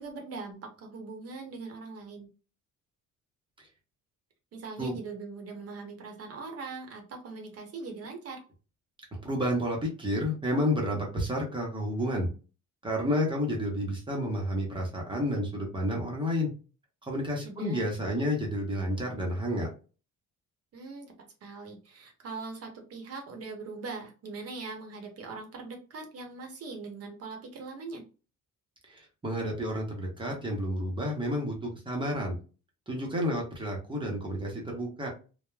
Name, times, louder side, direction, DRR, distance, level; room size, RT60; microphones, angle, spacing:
voice 1, 0.0-2.3 4.5-8.4 17.4-17.8 20.7-21.1 21.4-28.0, right 4 dB, 45° right, 3 dB, 0.8 m, -41 dB
voice 2, 9.2-12.3 12.8-16.5 17.0-19.7 28.8-32.4 32.9-35.1, equal, 15° right, -1 dB, 0.7 m, -30 dB
3.2 x 2.0 x 2.2 m, 0.34 s
cardioid pair, 170°, 33 cm